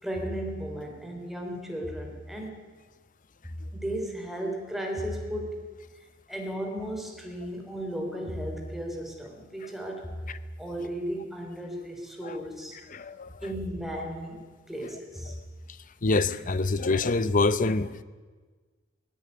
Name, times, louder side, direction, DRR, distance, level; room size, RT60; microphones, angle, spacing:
voice 1, 0.0-2.6 3.7-5.7 6.3-10.2 10.6-12.8 13.4-15.4, equal, ahead, 3.7 m, -35 dB
voice 2, 12.9-13.3 16.0-18.0, left 3 dB, 45° left, 0.8 m, -25 dB
19.0 x 17.0 x 9.8 m
head